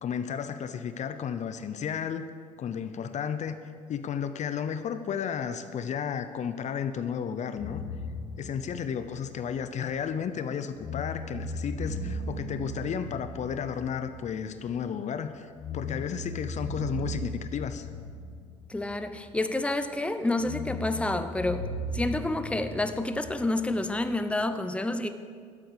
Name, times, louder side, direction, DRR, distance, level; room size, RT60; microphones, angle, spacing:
voice 1, 0.0-2.2 2.6-3.6 3.9-7.8 8.4-17.9, left 7 dB, 50° left, 11 dB, 0.7 m, -33 dB
sound 1, 7.6-10.4 10.8-15.0 15.6-19.7 20.4-24.4, left 1 dB, 25° left, 2.1 m, -38 dB
voice 2, 18.7-21.7 21.9-25.1, left 2 dB, 5° left, 9 dB, 0.8 m, -29 dB
12.0 x 8.4 x 6.7 m, 2.1 s
supercardioid pair, 70°, 16 cm